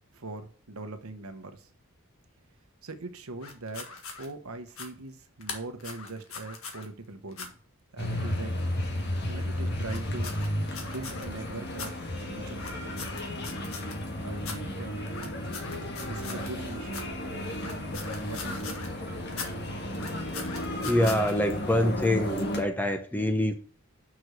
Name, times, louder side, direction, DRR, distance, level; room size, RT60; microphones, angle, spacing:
voice 1, 0.1-1.7 2.8-3.9 4.2-7.5 7.9-8.6 9.3-10.3 10.8-12.9 14.1-15.1 16.0-17.1 18.2-18.8, right 2 dB, 75° right, 1.0 m, -41 dB
sound 1, 3.4-4.3 4.7-4.9 5.4-6.9 7.3-7.5 9.8-11.2 11.7-11.9 12.5-14.1 14.4-14.6 15.1-16.6 16.9-17.0 17.5-18.9 19.3-19.5 19.9-21.3, left 5 dB, 70° left, 1.6 m, -40 dB
sound 2, 8.0-22.6, left 1 dB, 50° left, 1.5 m, -33 dB
voice 2, 20.8-23.5, left 1 dB, 10° left, 0.7 m, -25 dB
6.1 x 4.9 x 6.4 m
head